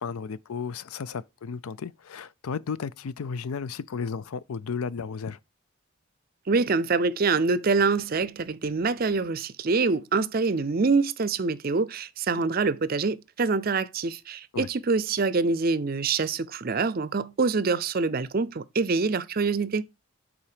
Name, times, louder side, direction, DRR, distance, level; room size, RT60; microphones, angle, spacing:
voice 1, 0.0-5.4 14.5-14.7, left 5 dB, 80° left, 0.5 m, -34 dB
voice 2, 6.5-19.8, right 4 dB, 40° right, 0.5 m, -25 dB
8.6 x 4.1 x 4.9 m
head